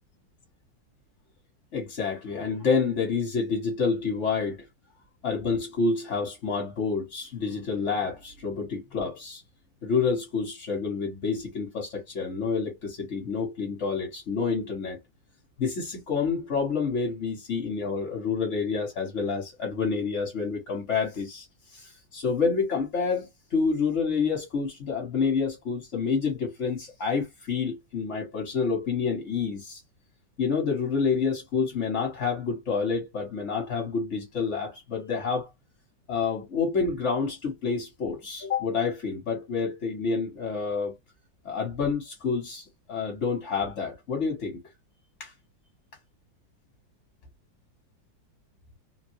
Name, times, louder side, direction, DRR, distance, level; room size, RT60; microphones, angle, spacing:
voice 1, 1.7-4.7 5.2-9.4 9.8-15.0 15.6-21.5 21.7-29.8 30.4-35.5 36.1-40.9 41.4-44.6 45.2-45.3, left 5 dB, 45° left, 1.2 m, -28 dB
3.0 x 2.6 x 2.7 m
omnidirectional pair, 2.0 m